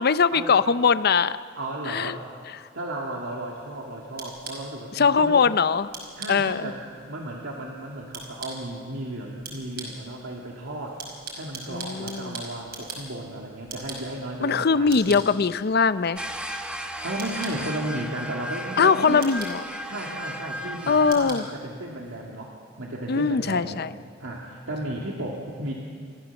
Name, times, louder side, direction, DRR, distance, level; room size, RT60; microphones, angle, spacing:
voice 1, 0.0-1.4 1.9-2.2 5.0-5.9 6.3-6.7 11.7-12.4 14.4-16.2 18.8-19.6 20.9-21.4 23.1-23.9, left 5 dB, 55° left, 14 dB, 0.6 m, -21 dB
voice 2, 1.6-2.3 2.7-5.5 6.2-6.8 7.1-11.0 11.4-15.2 17.0-19.2 19.8-23.9 24.2-25.7, right 1 dB, 85° right, -2 dB, 2.2 m, -34 dB
sound 1, 3.6-22.3, right 3 dB, 55° right, 5.1 m, -44 dB
sound 2, 16.1-21.1, equal, 5° right, 1.3 m, -35 dB
29.0 x 13.5 x 7.2 m, 2.2 s
head